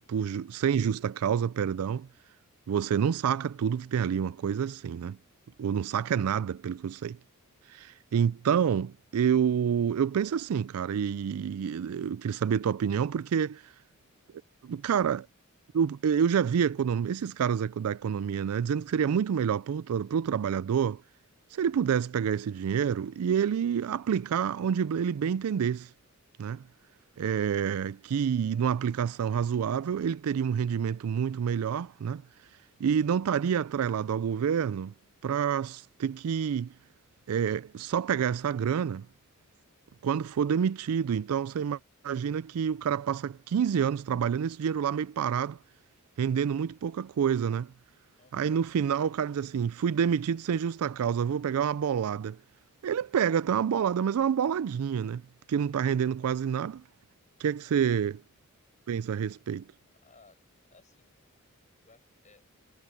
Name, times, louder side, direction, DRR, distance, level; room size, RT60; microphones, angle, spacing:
voice 1, 0.0-2.1 2.7-5.2 5.6-7.2 7.7-13.6 14.6-15.3 15.7-21.0 21.5-25.9 26.4-26.6 27.2-32.2 32.8-34.9 35.2-36.7 37.3-39.1 40.0-41.8 42.0-45.6 46.2-47.7 48.3-52.4 52.8-55.2 55.5-56.8 57.4-58.1 58.9-59.6, right 7 dB, 75° right, 0.4 m, -28 dB
voice 2, 48.2-48.6 57.8-58.0 60.0-61.2 61.8-62.5, left 3 dB, 35° left, 7.2 m, -60 dB
head